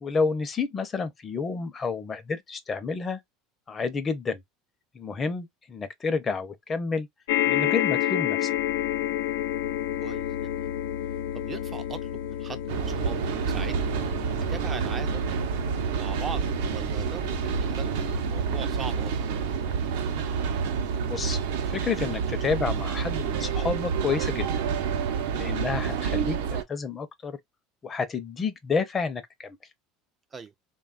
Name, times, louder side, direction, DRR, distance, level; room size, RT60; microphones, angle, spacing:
voice 1, 0.0-3.2 3.7-4.4 4.9-7.1 7.5-8.5 21.0-21.4 21.7-24.5 25.3-27.4 27.8-29.6, left 5 dB, 25° left, 0.6 m, -30 dB
sound 1, 7.3-21.8 22.6-22.7 22.9-23.0, left 12 dB, 90° left, 0.3 m, -31 dB
sound 2, 8.5-21.6, left 6 dB, 65° left, 0.8 m, -41 dB
voice 2, 10.0-10.7 11.3-13.9 14.5-15.3 16.0-16.4 16.7-19.4 30.3-30.5, right 5 dB, 25° right, 0.3 m, -40 dB
sound 3, 12.7-26.6, right 7 dB, 85° right, 0.6 m, -28 dB
3.3 x 2.3 x 2.4 m
supercardioid pair, 125°, 0 cm